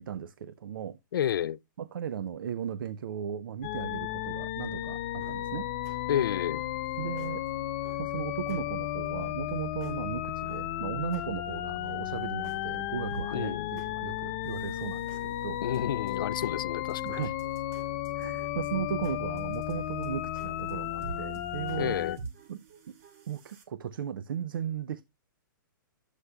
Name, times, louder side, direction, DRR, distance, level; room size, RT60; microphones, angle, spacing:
voice 1, 0.0-1.0 1.8-5.7 7.0-7.5 8.0-15.6 17.0-17.4 18.1-22.0 22.5-22.6 23.3-25.0, right 9 dB, 80° right, 0.5 m, -36 dB
voice 2, 1.1-1.6 6.1-6.6 13.3-13.7 15.6-17.2 21.8-22.2, left 10 dB, 80° left, 0.4 m, -30 dB
sound 1, 3.6-22.2, left 13 dB, 35° left, 0.6 m, -34 dB
sound 2, 5.2-23.6, right 4 dB, 45° right, 2.3 m, -51 dB
11.0 x 8.2 x 2.3 m
hypercardioid pair, 150°, 11 cm